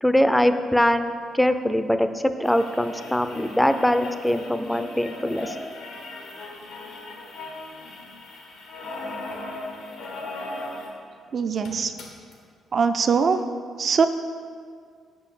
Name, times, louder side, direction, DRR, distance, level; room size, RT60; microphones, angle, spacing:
voice 1, 0.0-5.6, left 1 dB, 5° left, 9 dB, 0.5 m, -22 dB
sound 1, 2.4-11.0 11.3-11.4 11.6-12.3 13.3-13.4, left 2 dB, 90° left, 1.4 m, -38 dB
voice 2, 11.3-11.9 12.7-13.4 13.8-14.1, right 5 dB, 50° right, 8 dB, 0.5 m, -22 dB
7.0 x 5.2 x 7.0 m, 2.1 s
cardioid pair, 95°, 0 cm